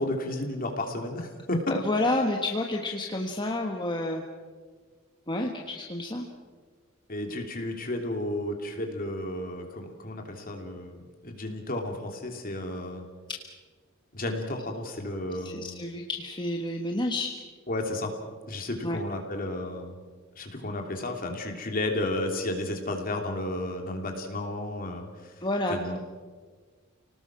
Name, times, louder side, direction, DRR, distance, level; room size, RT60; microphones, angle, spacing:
voice 1, 0.0-1.6 7.1-13.0 14.1-15.8 17.7-18.1 18.5-20.0 20.3-25.4 25.7-26.0, left 1 dB, 45° left, 3 dB, 3.1 m, -32 dB
voice 2, 1.7-4.2 5.3-6.3 13.3-13.4 15.4-17.3 18.8-19.0 25.4-26.0, left 2 dB, 25° left, 1 dB, 1.4 m, -29 dB
30.0 x 19.0 x 6.1 m, 1.5 s
head